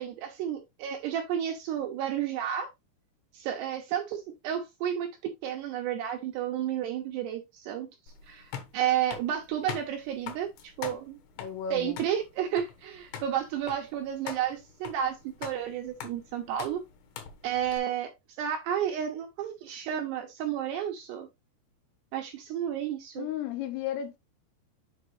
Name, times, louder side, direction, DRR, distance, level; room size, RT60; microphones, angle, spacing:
voice 1, 0.0-2.7 3.3-5.1 5.4-7.9 8.3-11.2 11.7-16.8 17.4-18.1 18.4-21.3 22.1-23.3, right 10 dB, 75° right, 2.6 m, -31 dB
sound 1, 8.1-17.8, left 8 dB, 65° left, 2.8 m, -44 dB
voice 2, 11.4-12.0 23.2-24.2, left 8 dB, 85° left, 3.9 m, -34 dB
7.8 x 5.2 x 3.2 m
omnidirectional pair, 5.8 m